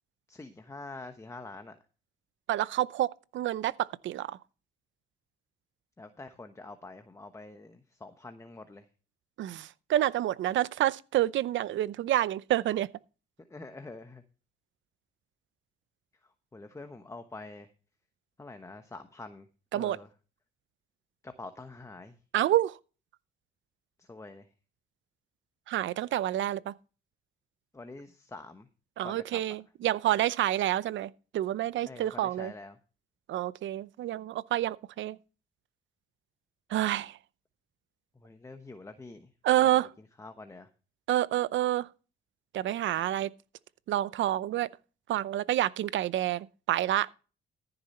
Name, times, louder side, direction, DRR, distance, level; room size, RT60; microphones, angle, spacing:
voice 1, 0.3-1.8 6.0-8.8 13.5-14.2 16.5-17.7 18.4-19.5 19.7-20.1 21.2-22.2 24.0-24.5 27.7-28.7 29.0-29.4 31.8-32.8 38.1-39.7 40.2-40.7, left 2 dB, 15° left, 1.1 m, -46 dB
voice 2, 2.5-4.4 9.4-12.9 19.7-20.0 22.3-22.8 25.7-26.7 29.0-32.5 33.3-35.2 36.7-37.2 39.4-39.9 41.1-41.9 42.5-43.3 43.9-44.7 45.1-47.1, right 13 dB, 70° right, 0.6 m, -28 dB
14.5 x 6.8 x 4.3 m
cardioid pair, 90°, 20 cm